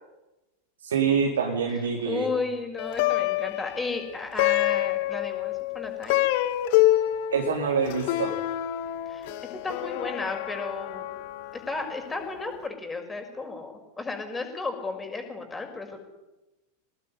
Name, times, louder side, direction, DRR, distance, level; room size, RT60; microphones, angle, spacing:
voice 1, 0.8-2.3 7.3-8.4, right 6 dB, 65° right, 2 dB, 3.8 m, -25 dB
voice 2, 2.1-6.2 9.1-11.1 11.5-16.0, left 3 dB, 10° left, 4 dB, 6.1 m, -33 dB
Plucked string instrument, 2.8-12.2, left 15 dB, 50° left, 1.9 m, -27 dB
25.5 x 19.0 x 9.8 m, 1.0 s
figure-of-eight pair, 90°, 0 cm